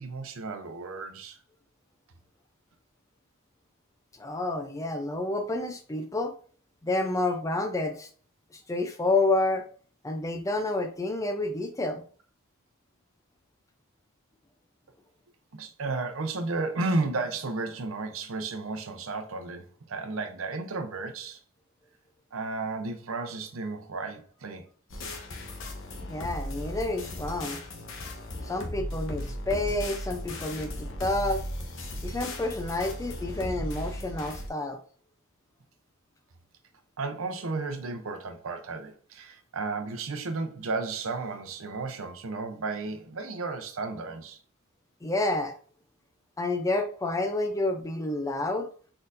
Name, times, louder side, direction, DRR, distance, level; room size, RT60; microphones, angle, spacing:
voice 1, 0.0-1.4 15.5-21.4 22.3-24.6 37.0-44.4, right 3 dB, 65° right, 0.7 m, -33 dB
voice 2, 4.2-6.3 6.8-8.1 8.5-9.7 10.0-12.0 26.1-27.6 28.4-31.4 32.0-34.8 45.0-45.5 46.4-48.7, left 2 dB, 15° left, 0.4 m, -29 dB
sound 1, 24.9-34.5, left 1 dB, 60° left, 0.9 m, -36 dB
4.2 x 3.8 x 2.5 m
head